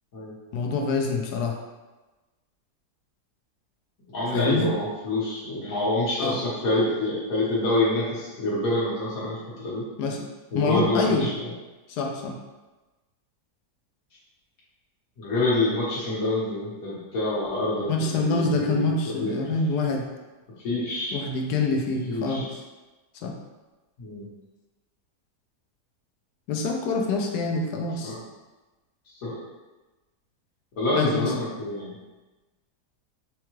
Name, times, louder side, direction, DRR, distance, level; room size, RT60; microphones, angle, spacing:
voice 1, 0.5-1.6 4.3-4.7 6.2-6.4 10.0-10.3 10.5-11.3 11.9-12.4 17.9-20.1 21.1-22.5 23.2-23.4 26.5-28.1 30.9-31.3, left 3 dB, 85° left, 2 dB, 1.1 m, -26 dB
voice 2, 4.1-9.8 10.5-11.5 15.2-19.5 20.6-21.2 22.1-22.5 24.0-24.3 28.0-28.2 29.1-29.4 30.8-31.9, left 2 dB, 65° left, -7 dB, 1.6 m, -27 dB
4.6 x 2.2 x 3.0 m, 1.2 s
omnidirectional pair, 1.7 m